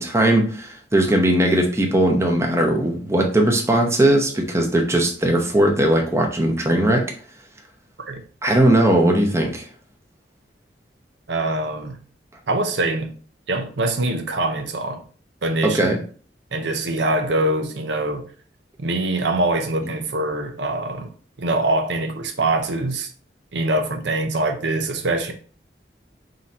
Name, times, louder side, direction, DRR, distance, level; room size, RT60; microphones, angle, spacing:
voice 1, 0.0-7.0 8.4-9.7 15.6-16.0, right 1 dB, 15° right, 0.8 m, -19 dB
voice 2, 11.3-12.0 12.5-13.1 13.5-15.0 15.4-15.9 16.5-18.2 18.8-21.1 21.4-23.1 23.5-25.3, right 2 dB, 80° right, 0.7 m, -23 dB
3.8 x 2.7 x 4.1 m
head